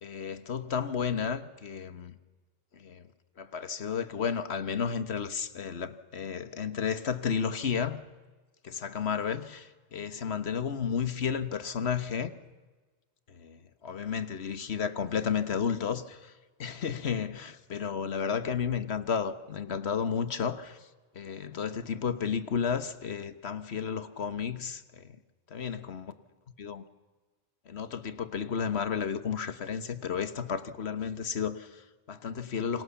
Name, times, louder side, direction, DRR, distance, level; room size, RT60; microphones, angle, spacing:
voice 1, 0.0-2.1 2.7-3.1 3.4-8.0 8.6-12.3 13.3-16.3 16.6-20.8 21.1-25.1 25.5-26.1 26.6-26.8 27.7-32.8, left 7 dB, 80° left, 1.5 m, -32 dB
28.0 x 25.0 x 7.1 m
omnidirectional pair, 1.1 m